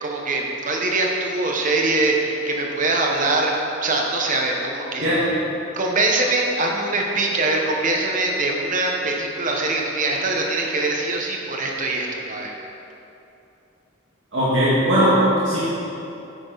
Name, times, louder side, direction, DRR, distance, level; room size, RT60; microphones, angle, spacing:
voice 1, 0.0-3.5 3.8-5.1 5.7-12.6, right 2 dB, 40° right, 0 dB, 1.2 m, -23 dB
voice 2, 14.3-15.6, equal, 60° right, -10 dB, 1.9 m, -18 dB
9.3 x 8.8 x 4.1 m, 2.9 s
head